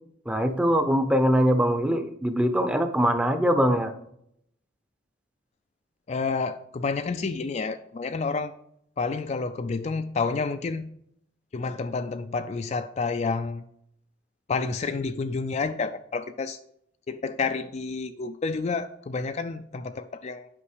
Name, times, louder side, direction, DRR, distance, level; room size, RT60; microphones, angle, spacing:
voice 1, 0.3-3.9, equal, 5° right, 7 dB, 0.6 m, -22 dB
voice 2, 6.1-8.5 9.0-10.9 11.5-13.6 14.5-16.6 17.1-20.5, left 4 dB, 35° left, 9 dB, 0.3 m, -29 dB
8.4 x 5.3 x 4.9 m, 0.73 s
head